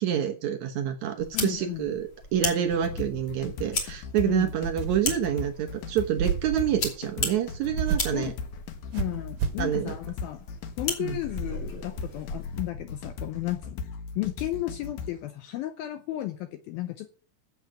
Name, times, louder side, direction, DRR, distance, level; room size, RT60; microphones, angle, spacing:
voice 1, 0.0-8.3 9.6-9.9 11.0-11.2, right 10 dB, 85° right, 6 dB, 1.6 m, -27 dB
sound 1, 1.2-12.6, left 3 dB, 40° left, 3.5 m, -37 dB
voice 2, 1.3-1.9 4.3-4.5 8.1-8.3 8.9-10.5 10.8-13.8 14.2-17.1, left 15 dB, 80° left, 8 dB, 2.2 m, -33 dB
sound 2, 2.7-15.2, left 4 dB, 65° left, 2.7 m, -38 dB
sound 3, 4.6-5.2 6.2-6.6 7.8-8.2 8.9-9.7, right 7 dB, 70° right, 2.3 m, -30 dB
13.5 x 7.8 x 6.0 m, 0.43 s
omnidirectional pair, 4.8 m